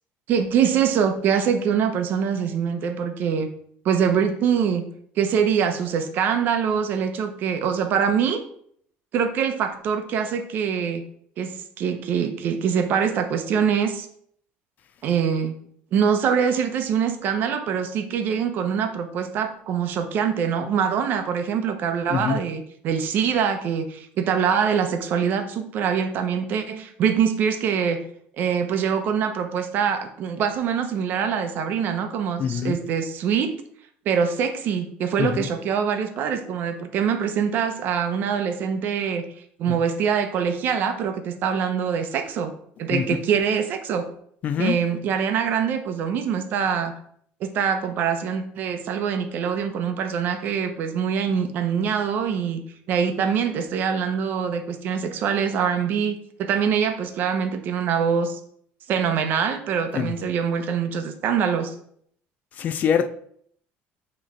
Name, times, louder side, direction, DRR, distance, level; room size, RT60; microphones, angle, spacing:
voice 1, 0.3-3.5 3.8-4.8 5.2-8.4 9.1-11.0 11.4-14.1 15.0-15.6 15.9-28.0 28.4-33.5 34.1-39.2 39.6-42.5 42.8-44.1 44.6-46.9 47.4-52.6 52.9-58.4 58.9-61.7, right 7 dB, 50° right, 0.8 m, -24 dB
voice 2, 32.4-32.8 35.2-35.5 42.9-43.0 44.4-44.8 59.9-60.1 62.6-63.1, left 8 dB, 40° left, 0.4 m, -24 dB
8.3 x 3.1 x 4.3 m
cardioid pair, 165°, 4 cm